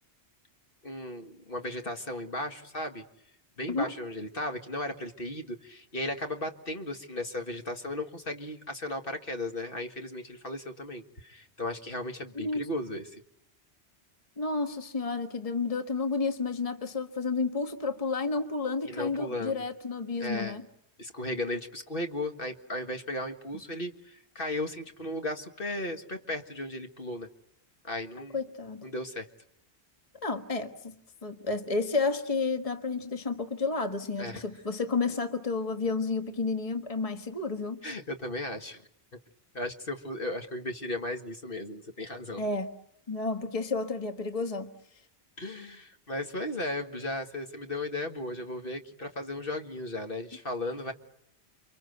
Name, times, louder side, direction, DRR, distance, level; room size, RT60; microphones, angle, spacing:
voice 1, 0.8-3.0 3.6-13.2 18.8-19.6 20.2-20.6 21.0-27.3 27.8-28.4 28.8-29.3 34.2-34.4 37.8-38.8 39.5-42.4 45.4-50.9, left 1 dB, 55° left, 5 dB, 2.0 m, -36 dB
voice 2, 14.4-20.6 28.2-28.8 30.2-30.9 31.2-37.8 42.4-42.7 43.1-44.7, left 4 dB, 30° left, 6 dB, 1.6 m, -31 dB
30.0 x 23.5 x 8.0 m, 0.76 s
omnidirectional pair, 1.1 m